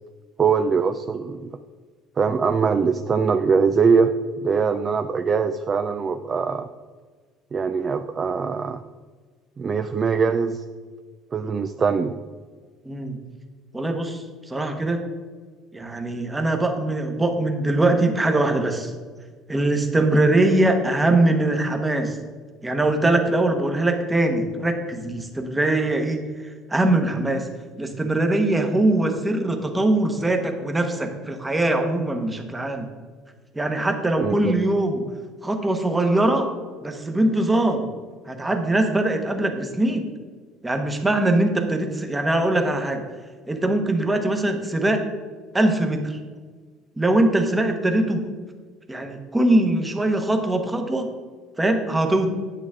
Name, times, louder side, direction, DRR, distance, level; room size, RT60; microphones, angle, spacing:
voice 1, 0.4-1.5 2.2-4.1 4.4-6.7 7.5-8.8 9.6-10.6 11.3-12.1 34.2-34.6, right 5 dB, 25° right, 8 dB, 0.3 m, -22 dB
voice 2, 12.8-13.2 13.7-15.0 15.7-18.9 19.5-22.2 22.6-27.5 27.8-32.9 33.5-35.0 35.4-36.5 36.8-37.9 38.3-40.1 40.6-43.0 43.5-45.0 45.5-46.2 47.0-48.2 48.9-51.1 51.6-52.3, right 2 dB, 10° right, 5 dB, 1.0 m, -22 dB
9.7 x 8.9 x 3.6 m, 1.5 s
cardioid pair, 160°, 0 cm